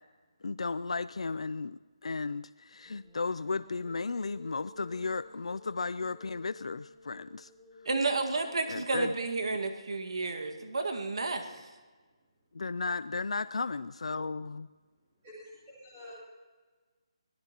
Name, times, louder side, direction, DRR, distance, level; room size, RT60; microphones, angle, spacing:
voice 1, 0.4-7.5 8.7-9.1 12.5-14.7, left 4 dB, 90° left, 15 dB, 0.4 m, -34 dB
sound 1, 2.8-10.2, left 2 dB, 5° left, 4.1 m, -55 dB
voice 2, 7.9-11.6, right 3 dB, 60° right, 6 dB, 1.8 m, -31 dB
voice 3, 11.2-11.6 15.2-16.1, left 1 dB, 15° right, -8 dB, 3.2 m, -50 dB
24.5 x 18.0 x 3.0 m, 1.4 s
hypercardioid pair, 180°, 3 cm